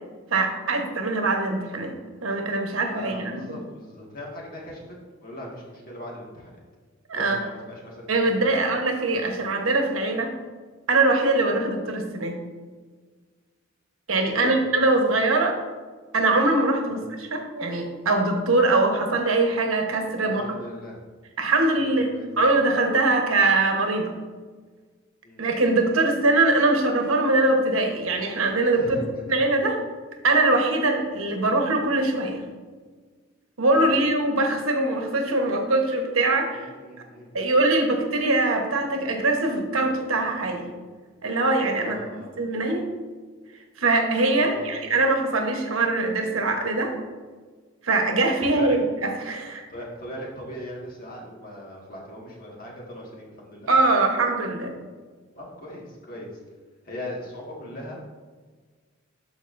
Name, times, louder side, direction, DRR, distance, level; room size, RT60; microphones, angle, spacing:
voice 1, 0.3-1.9 2.2-3.6 7.1-7.4 8.1-10.3 10.9-12.4 14.1-15.6 16.1-20.6 21.4-24.1 25.4-29.8 30.2-32.4 33.6-36.7 37.3-40.7 41.2-42.0 42.4-42.8 43.8-46.9 47.8-49.6 53.7-54.8, right 2 dB, 85° right, 3 dB, 1.1 m, -22 dB
voice 2, 2.9-4.8 5.2-6.6 7.2-8.6 14.2-14.6 16.9-17.0 20.2-21.0 21.8-22.3 25.2-25.5 28.7-29.4 33.8-34.0 36.5-37.5 41.7-42.3 44.3-44.9 48.6-48.8 49.7-53.7 55.4-56.3 56.8-58.0, left 1 dB, 45° left, -3 dB, 1.8 m, -39 dB
12.5 x 4.7 x 2.6 m, 1.5 s
head